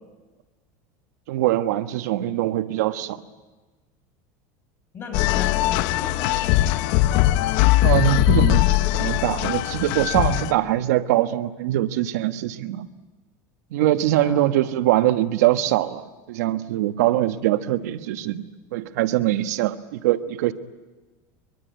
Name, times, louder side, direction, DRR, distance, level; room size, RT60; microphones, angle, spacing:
voice 1, 1.3-3.2 7.8-8.6 8.9-12.9 13.7-18.4 18.7-20.5, right 14 dB, 90° right, 10 dB, 1.3 m, -22 dB
voice 2, 4.9-6.9 14.2-14.4, left 5 dB, 30° left, 4 dB, 5.9 m, -36 dB
sound 1, 5.1-10.5, left 16 dB, 60° left, 0.8 m, -20 dB
23.0 x 23.0 x 9.4 m, 1.2 s
supercardioid pair, 155°, 9 cm